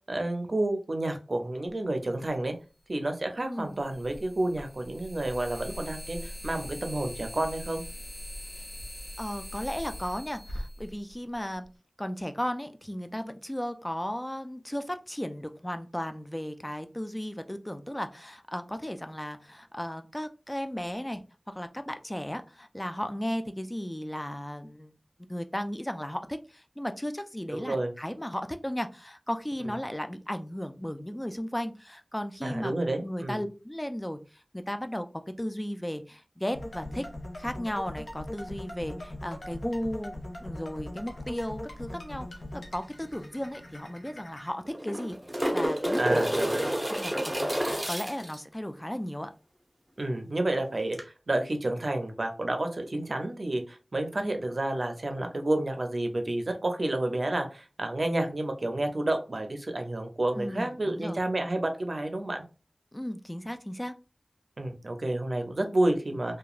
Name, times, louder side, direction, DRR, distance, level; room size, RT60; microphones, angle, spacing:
voice 1, 0.1-2.5 2.9-7.8 27.5-27.9 32.4-33.4 45.9-46.6 50.0-51.0 51.3-62.4 64.6-66.4, right 1 dB, 60° right, 5 dB, 0.5 m, -30 dB
sound 1, 2.3-2.4 3.7-11.6, equal, 85° left, 0.8 m, -41 dB
voice 2, 3.4-3.8 9.2-11.7 12.0-24.9 25.3-32.7 33.0-35.1 35.4-37.0 37.4-45.2 45.5-46.2 46.9-47.5 47.9-49.3 60.3-61.2 62.9-63.9, equal, 15° left, 8 dB, 0.3 m, -35 dB
sound 2, 36.5-44.5, left 1 dB, 60° left, 0.7 m, -41 dB
sound 3, 43.2-43.3 43.5-43.6 44.7-48.4 50.9-51.0, equal, 10° right, 0.7 m, -29 dB
2.9 x 2.2 x 2.4 m, 0.33 s
wide cardioid pair, 55°, 0 cm